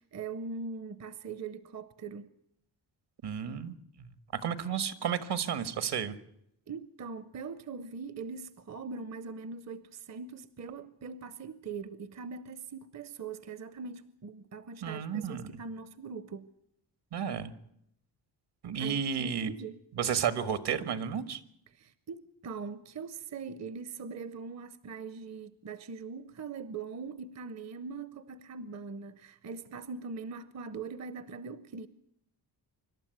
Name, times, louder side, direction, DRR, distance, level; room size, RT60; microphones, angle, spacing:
voice 1, 0.0-2.3 6.7-16.5 18.8-19.8 21.7-31.9, right 5 dB, 40° right, 0.8 m, -41 dB
voice 2, 3.2-4.1 4.4-6.1 14.8-15.5 17.1-17.5 18.6-19.5 19.9-21.4, right 7 dB, 70° right, 1.8 m, -32 dB
26.0 x 12.5 x 9.4 m
wide cardioid pair, 150°, 42 cm